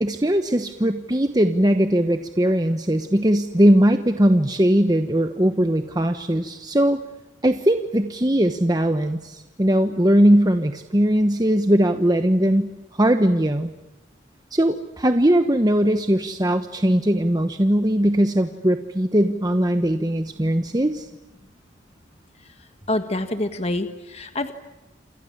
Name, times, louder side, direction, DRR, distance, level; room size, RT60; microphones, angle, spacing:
voice 1, 0.0-7.0 7.4-13.7 14.5-21.1, right 1 dB, 20° right, 7 dB, 1.1 m, -20 dB
voice 2, 22.9-24.5, left 1 dB, 35° left, 7 dB, 1.6 m, -26 dB
28.5 x 27.5 x 7.4 m, 1.0 s
head